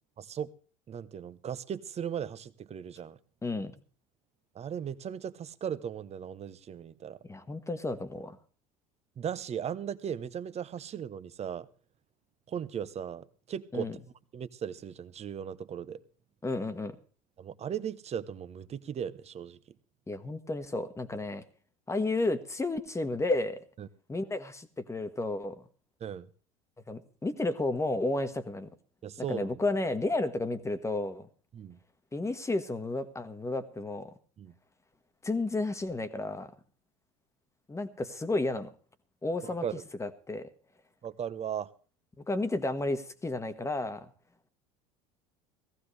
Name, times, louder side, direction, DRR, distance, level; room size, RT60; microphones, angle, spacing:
voice 1, 0.2-0.5 0.9-3.2 4.5-7.2 9.2-11.7 12.5-13.9 14.3-16.0 17.4-19.6 23.8-23.9 26.0-26.3 29.0-29.6 31.5-31.8 34.4-34.5 39.4-39.8 41.0-41.7, right 8 dB, 35° right, 0.9 m, -37 dB
voice 2, 7.3-8.4 13.7-14.0 16.4-16.9 20.1-21.4 21.9-23.6 24.1-25.6 26.9-28.7 29.3-31.3 32.1-34.1 35.2-36.5 37.7-38.7 39.2-39.6 40.0-40.5 42.3-44.0, left 2 dB, 15° left, 1.4 m, -32 dB
17.5 x 15.0 x 3.3 m
hypercardioid pair, 75°, 19 cm